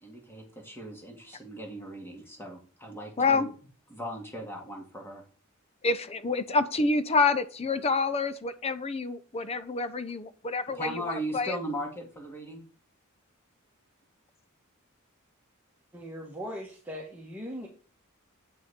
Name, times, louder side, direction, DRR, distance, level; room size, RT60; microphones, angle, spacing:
voice 1, 0.0-3.5 3.9-5.2 10.7-12.6, right 1 dB, 10° left, 0 dB, 2.4 m, -38 dB
voice 2, 3.2-3.5 5.8-11.6, left 4 dB, 30° left, 13 dB, 0.6 m, -27 dB
voice 3, 15.9-17.7, equal, 10° right, -3 dB, 1.7 m, -39 dB
8.7 x 6.2 x 4.4 m, 0.39 s
head